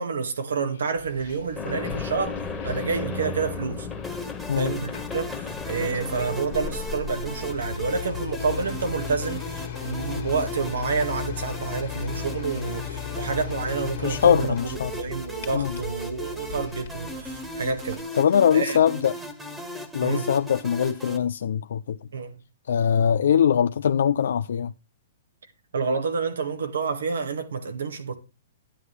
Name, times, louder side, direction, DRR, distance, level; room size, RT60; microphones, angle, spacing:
voice 1, 0.0-3.9 4.5-18.0 18.5-18.8 20.0-20.3 22.1-22.4 25.7-28.1, right 5 dB, 80° right, 1.8 m, -29 dB
sound 1, 1.0-18.0, left 9 dB, 55° left, 1.9 m, -37 dB
sound 2, 1.6-7.6, left 4 dB, 15° left, 1.6 m, -35 dB
sound 3, 4.0-21.2, equal, 5° right, 1.6 m, -37 dB
voice 2, 14.0-14.9 15.5-15.7 18.2-19.1 19.9-22.0 22.7-24.7, left 8 dB, 75° left, 0.4 m, -22 dB
10.0 x 9.3 x 3.3 m
hypercardioid pair, 135°, 0 cm